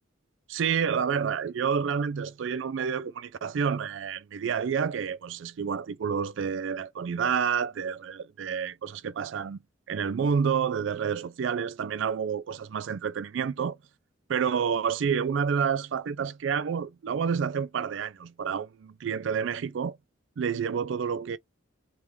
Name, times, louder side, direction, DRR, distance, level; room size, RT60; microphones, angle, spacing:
voice 1, 0.5-9.6 9.9-13.8 14.3-20.0 20.4-21.4, right 6 dB, 70° right, 0.4 m, -29 dB
3.5 x 3.1 x 3.0 m
head